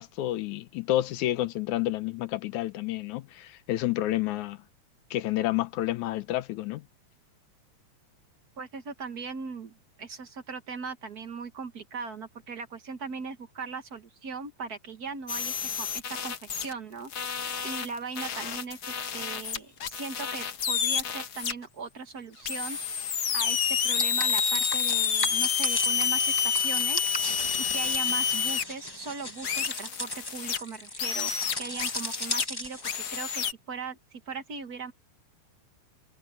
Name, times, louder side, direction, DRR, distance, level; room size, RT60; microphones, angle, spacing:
voice 1, 0.0-4.6 5.1-6.8, left 15 dB, 80° left, 2.1 m, -29 dB
voice 2, 8.6-17.3 17.6-22.8 23.3-27.0 27.6-31.3 31.6-34.9, right 5 dB, 45° right, 1.3 m, -39 dB
sound 1, 15.3-16.7 17.1-21.5 22.4-28.6 29.4-30.6 31.0-32.5 32.8-33.5, left 7 dB, 65° left, 1.0 m, -29 dB
sound 2, 23.9-33.2, left 2 dB, 40° left, 0.3 m, -35 dB
omnidirectional pair, 3.5 m